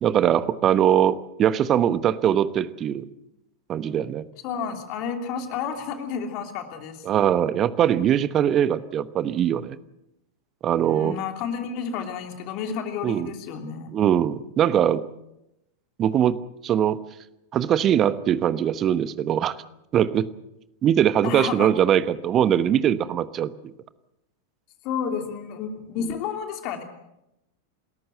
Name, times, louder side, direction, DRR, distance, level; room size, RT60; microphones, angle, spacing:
voice 1, 0.0-3.0 3.7-4.2 7.0-9.8 10.6-11.2 13.0-13.3 13.9-15.0 16.0-17.0 17.5-19.5 19.9-20.3 20.8-23.7, right 10 dB, 30° right, 15 dB, 1.1 m, -21 dB
voice 2, 4.4-7.0 10.8-13.9 21.2-21.7 24.8-26.8, left 6 dB, 40° left, 5 dB, 3.0 m, -31 dB
29.0 x 14.0 x 7.8 m, 0.87 s
figure-of-eight pair, 90°, 0 cm